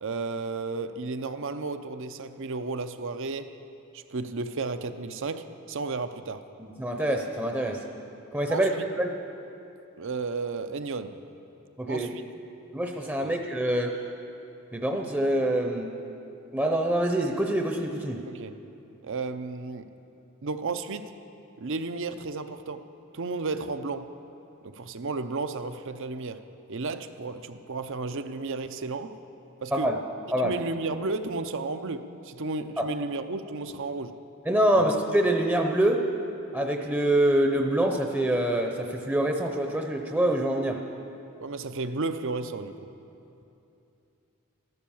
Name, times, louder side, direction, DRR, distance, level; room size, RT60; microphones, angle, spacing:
voice 1, 0.0-3.5 3.9-6.4 8.5-8.9 10.0-11.1 11.9-12.2 13.2-13.4 18.3-18.6 19.0-19.9 20.4-21.1 21.6-22.8 23.1-24.1 24.6-26.4 26.7-29.1 29.6-29.9 30.4-34.2 34.8-34.9 41.4-42.7, right 3 dB, 60° right, 10 dB, 0.7 m, -33 dB
voice 2, 6.6-7.8 8.3-9.1 11.8-12.1 12.7-13.9 14.7-15.9 16.5-18.2 29.7-30.0 30.3-30.5 32.8-32.9 34.5-36.1 36.5-40.8, right 1 dB, 10° right, 3 dB, 0.7 m, -25 dB
14.0 x 12.0 x 7.1 m, 2.8 s
head